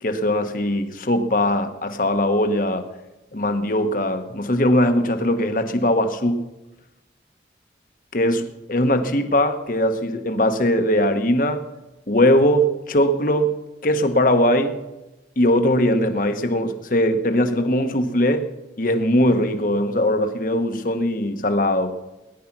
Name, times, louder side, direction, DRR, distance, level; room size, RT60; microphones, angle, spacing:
voice 1, 0.0-2.8 3.3-6.4 8.1-11.6 12.1-13.6 13.8-14.8 15.4-18.5 18.8-22.0, left 1 dB, 50° left, 7 dB, 1.1 m, -20 dB
18.0 x 11.0 x 6.0 m, 1.0 s
head